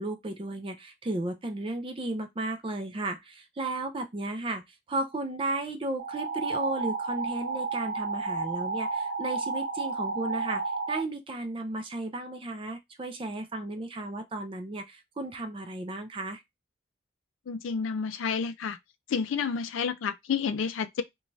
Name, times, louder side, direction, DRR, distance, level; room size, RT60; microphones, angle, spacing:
voice 1, 0.0-4.6 4.9-10.6 10.9-16.4, right 2 dB, 25° right, 0.4 m, -34 dB
sound 1, 6.0-11.0, right 4 dB, 80° right, 0.8 m, -32 dB
voice 2, 17.5-18.8 19.1-21.0, left 6 dB, 80° left, 0.4 m, -30 dB
2.6 x 2.2 x 3.0 m
head